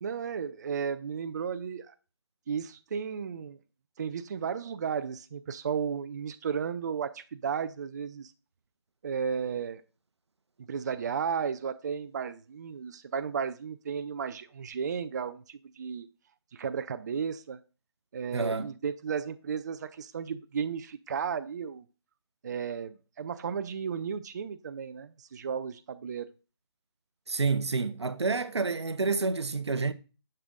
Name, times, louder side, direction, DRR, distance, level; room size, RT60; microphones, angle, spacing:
voice 1, 0.0-1.9 2.5-3.6 4.0-8.3 9.0-9.8 10.7-16.1 16.5-17.6 18.1-21.8 22.4-26.3, right 6 dB, 40° right, 0.4 m, -34 dB
voice 2, 18.3-18.7 27.3-29.9, right 4 dB, 80° right, 0.6 m, -29 dB
6.7 x 6.6 x 2.4 m
figure-of-eight pair, 145°, 14 cm